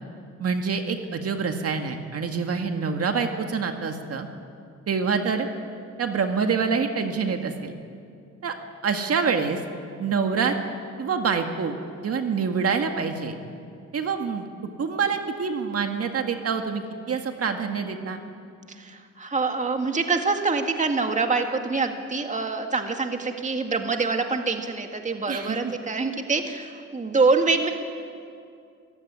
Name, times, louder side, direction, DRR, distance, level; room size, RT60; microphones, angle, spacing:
voice 1, 0.4-4.3 4.9-5.5 6.0-7.7 8.4-8.5 8.8-9.6 10.0-10.5 11.0-11.8 12.0-13.3 13.9-18.2 25.3-25.7, right 5 dB, 50° right, 5 dB, 2.0 m, -26 dB
voice 2, 18.7-27.7, right 4 dB, 25° right, 5 dB, 1.9 m, -25 dB
24.5 x 15.5 x 9.7 m, 2.4 s
cardioid pair, 90°, 30 cm